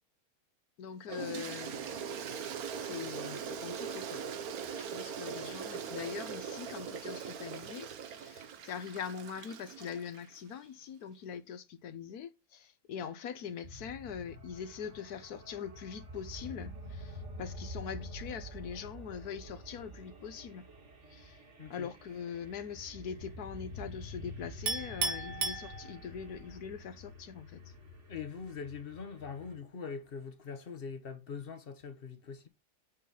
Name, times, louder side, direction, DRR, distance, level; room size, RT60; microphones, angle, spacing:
voice 1, 0.8-2.4 2.8-4.2 4.8-20.7 21.1-21.4 21.7-27.6, left 7 dB, 70° left, 1.3 m, -43 dB
Toilet flush, 1.1-10.4, right 7 dB, 65° right, 1.3 m, -41 dB
sound 1, 13.6-29.6, equal, 45° right, 2.0 m, -48 dB
voice 2, 21.6-21.9 28.1-32.5, left 6 dB, 40° left, 1.0 m, -42 dB
Chink clink, 24.7-26.3, right 4 dB, 90° right, 2.2 m, -35 dB
7.5 x 3.9 x 5.5 m
omnidirectional pair, 1.7 m